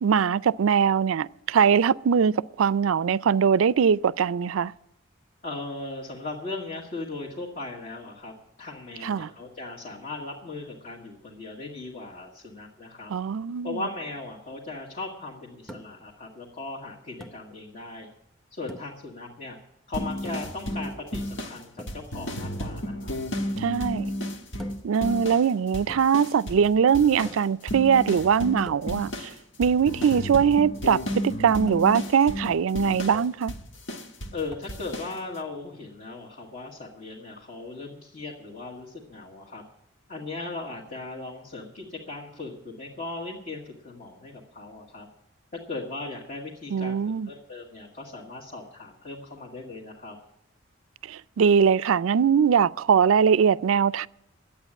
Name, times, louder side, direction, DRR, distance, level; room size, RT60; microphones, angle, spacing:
voice 1, 0.0-4.7 9.0-9.3 13.1-13.8 23.6-24.1 24.8-29.3 29.6-33.5 46.7-47.3 51.1-54.1, right 7 dB, 85° right, 0.4 m, -22 dB
voice 2, 5.4-13.1 13.6-18.1 18.5-19.6 19.9-23.2 34.3-39.6 40.1-45.1 45.5-47.0 47.3-50.2, left 3 dB, 40° left, 1.8 m, -38 dB
sound 1, 15.7-16.1 17.2-17.5 18.7-19.1 20.3-20.6 21.8-22.1 24.6-25.0 25.9-26.3 27.2-27.6 28.7-29.1 30.0-30.3 31.7-31.9 33.1-33.5 34.5-34.8, equal, ahead, 0.7 m, -45 dB
sound 2, 19.9-25.5 25.7-26.7 26.9-34.4 34.7-35.1, equal, 65° left, 1.4 m, -33 dB
11.5 x 8.7 x 9.9 m
head